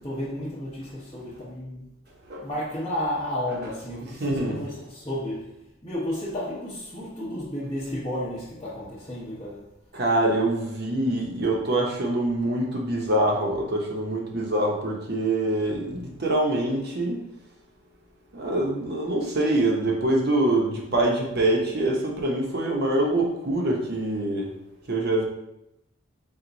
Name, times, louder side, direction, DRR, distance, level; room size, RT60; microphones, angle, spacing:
voice 1, 0.0-1.9 2.4-9.7, left 1 dB, 25° left, 1.0 m, -32 dB
voice 2, 4.1-4.6 9.9-17.2 18.3-24.5 24.9-25.2, right 1 dB, 50° right, 0.9 m, -25 dB
4.5 x 2.4 x 3.9 m
head